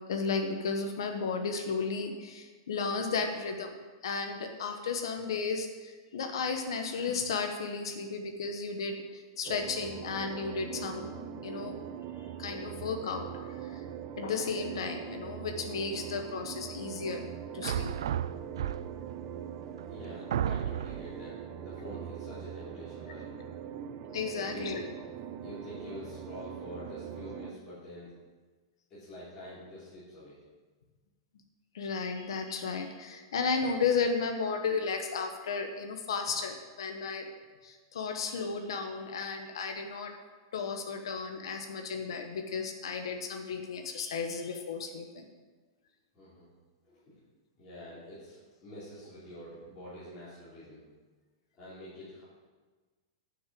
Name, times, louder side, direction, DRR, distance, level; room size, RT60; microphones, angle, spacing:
voice 1, 0.1-3.7 4.0-11.0 11.4-11.8 12.4-13.8 14.2-17.2 17.5-17.9 24.1-24.8 31.7-37.3 37.6-40.1 40.5-45.3, left 5 dB, 85° left, 5 dB, 1.2 m, -34 dB
sound 1, 9.4-27.5, right 8 dB, 30° right, 0.6 m, -42 dB
sound 2, 17.6-19.1 19.8-19.9 20.3-21.1, right 10 dB, 85° right, 0.4 m, -32 dB
voice 2, 19.8-23.3 24.4-24.7 25.4-28.1 28.9-30.4 46.1-46.5 46.8-47.0 47.6-50.8 51.6-52.2, left 1 dB, 25° left, -10 dB, 3.6 m, -47 dB
9.6 x 6.4 x 7.6 m, 1.3 s
supercardioid pair, 170°, 3 cm